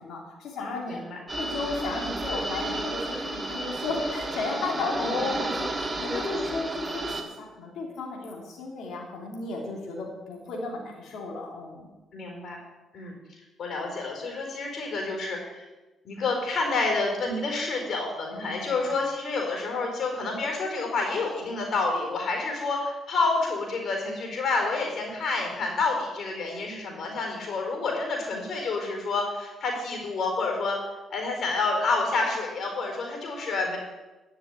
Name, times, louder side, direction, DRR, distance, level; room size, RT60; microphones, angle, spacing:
voice 1, 0.0-1.0 1.4-11.9 18.3-18.9, left 3 dB, 75° left, -1 dB, 3.2 m, -34 dB
voice 2, 0.9-1.2 5.0-5.3 6.1-6.2 12.1-12.6 12.9-13.1 13.6-15.7 16.0-30.8 31.1-33.8, left 3 dB, 60° left, 1 dB, 4.3 m, -29 dB
sound 1, 1.3-7.2, right 2 dB, 20° right, 1.7 m, -32 dB
11.5 x 6.8 x 9.1 m, 1.1 s
cardioid pair, 90°, 0 cm